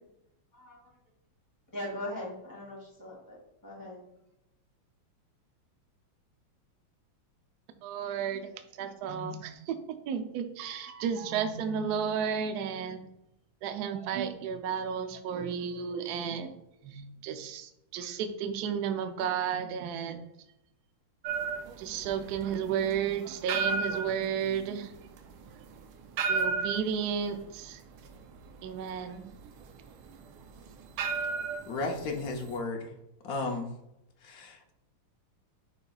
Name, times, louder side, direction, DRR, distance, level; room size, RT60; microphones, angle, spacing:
voice 1, 1.7-3.4 3.6-4.0, left 1 dB, 10° left, -4 dB, 2.1 m, -39 dB
voice 2, 7.8-8.5 8.8-13.0 13.6-16.5 16.8-20.3 21.8-24.9 26.3-27.8 28.6-29.2, right 7 dB, 70° right, 7 dB, 0.9 m, -33 dB
sound 1, 21.2-32.6, right 4 dB, 90° right, 1.5 m, -35 dB
voice 3, 31.7-32.9 33.2-33.7 34.2-34.7, left 3 dB, 65° left, 3 dB, 0.9 m, -34 dB
9.7 x 4.1 x 2.3 m, 0.84 s
omnidirectional pair, 2.3 m